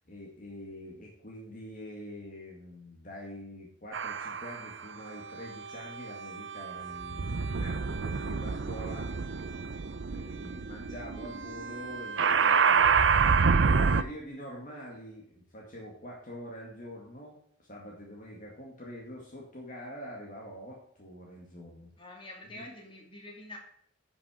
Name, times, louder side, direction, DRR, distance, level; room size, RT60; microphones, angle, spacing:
voice 1, 0.0-9.3 10.1-12.9 13.6-21.9 22.5-22.6, equal, 40° left, -2 dB, 1.9 m, -45 dB
sound 1, 3.9-4.7 5.5-14.0, right 5 dB, 60° right, 0.5 m, -28 dB
voice 2, 8.9-9.7 22.0-23.6, left 2 dB, 25° left, 0 dB, 2.6 m, -48 dB
11.0 x 5.9 x 5.0 m, 0.67 s
head